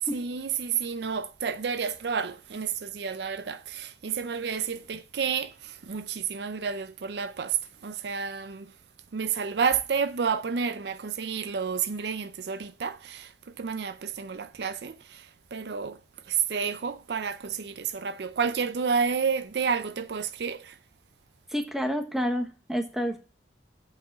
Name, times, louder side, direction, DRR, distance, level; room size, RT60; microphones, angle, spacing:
voice 1, 0.0-8.7 9.1-20.8, right 6 dB, 65° right, 0.5 m, -30 dB
voice 2, 21.5-23.2, equal, ahead, 1.0 m, -29 dB
8.4 x 4.9 x 7.2 m
head